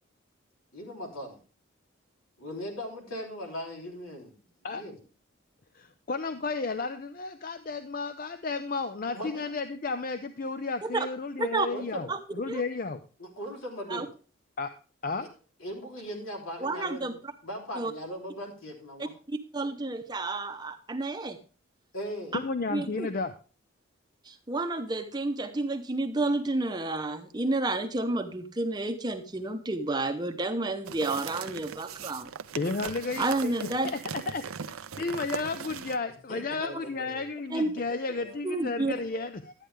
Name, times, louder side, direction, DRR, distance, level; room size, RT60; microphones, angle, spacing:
voice 1, 0.7-1.4 2.4-4.4 4.7-5.0 9.1-9.5 11.7-12.1 13.2-14.1 15.6-17.1 17.4-19.1 21.9-22.4 34.9-35.1 36.3-37.3 37.9-38.4 39.1-39.2, equal, 85° left, 1 dB, 3.3 m, -39 dB
voice 2, 5.7-13.0 14.6-14.7 15.0-15.3 22.3-23.3 32.6-33.5 33.8-39.5, left 3 dB, 45° left, 10 dB, 0.5 m, -33 dB
voice 3, 16.6-17.1 17.7-17.9 19.3-21.4 22.7-23.1 24.2-32.3 33.2-33.9 37.5-37.7 38.4-38.9, right 2 dB, 20° right, 7 dB, 0.7 m, -30 dB
sound 1, 30.9-36.0, right 7 dB, 90° right, 0.6 m, -39 dB
12.0 x 9.1 x 3.3 m, 0.36 s
head